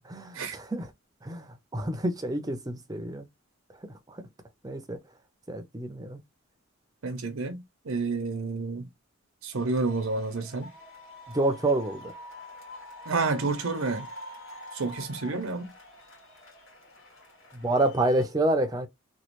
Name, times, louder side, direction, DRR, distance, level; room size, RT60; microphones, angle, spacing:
voice 1, 0.1-0.9 1.2-3.3 4.1-4.3 4.6-5.0 5.5-6.2 11.3-12.1 17.5-18.9, right 2 dB, 15° right, 0.5 m, -28 dB
voice 2, 7.0-8.9 9.4-10.7 13.1-14.1 14.7-15.7, right 3 dB, 75° right, 0.6 m, -30 dB
sound 1, 9.5-18.3, left 1 dB, 65° left, 1.6 m, -46 dB
3.0 x 2.3 x 3.0 m
head